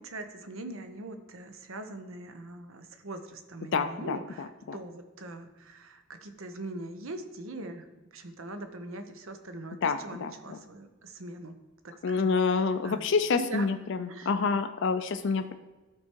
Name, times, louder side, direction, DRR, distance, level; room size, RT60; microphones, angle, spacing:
voice 1, 0.0-7.9 8.1-11.5 11.8-13.7 14.1-14.3, right 2 dB, 70° right, 8 dB, 0.9 m, -42 dB
voice 2, 3.7-4.8 9.8-10.6 12.0-15.5, left 4 dB, 60° left, 8 dB, 0.5 m, -28 dB
12.0 x 4.7 x 4.5 m, 1.2 s
head